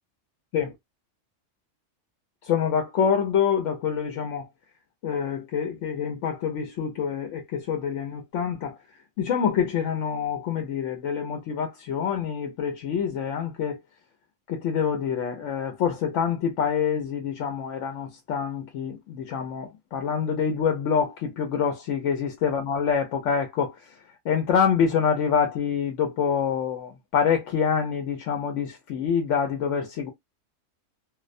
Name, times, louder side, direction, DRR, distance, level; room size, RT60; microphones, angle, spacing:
voice 1, 2.4-4.5 5.0-8.8 9.2-13.8 14.5-23.7 24.3-30.1, left 7 dB, 80° left, 0.9 m, -26 dB
2.4 x 2.1 x 2.4 m
omnidirectional pair, 1.3 m